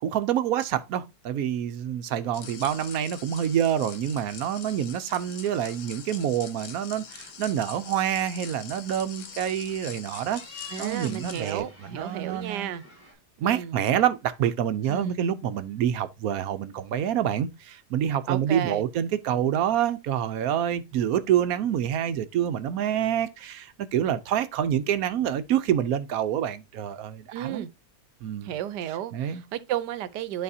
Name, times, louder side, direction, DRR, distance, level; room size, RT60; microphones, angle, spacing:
voice 1, 0.0-11.6 11.9-12.7 13.4-27.6 28.2-28.5 29.1-29.4, right 10 dB, 70° right, 1.0 m, -27 dB
sound 1, 2.0-13.1, left 3 dB, 10° left, 4.5 m, -52 dB
sound 2, 2.3-11.6, left 7 dB, 55° left, 1.0 m, -43 dB
voice 2, 10.7-12.8 13.4-13.7 14.9-15.2 18.3-18.8 27.3-27.7 28.4-30.4, right 11 dB, 85° right, 1.2 m, -33 dB
11.0 x 4.1 x 2.7 m
omnidirectional pair, 1.8 m